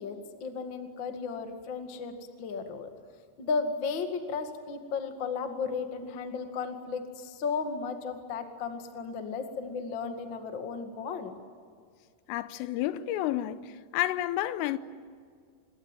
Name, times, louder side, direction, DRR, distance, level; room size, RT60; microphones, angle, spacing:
voice 1, 0.0-2.9 3.4-11.3, left 5 dB, 60° left, 1.2 m, -34 dB
voice 2, 12.3-14.8, left 14 dB, 85° left, 3.4 m, -30 dB
27.0 x 22.0 x 9.1 m
omnidirectional pair, 5.9 m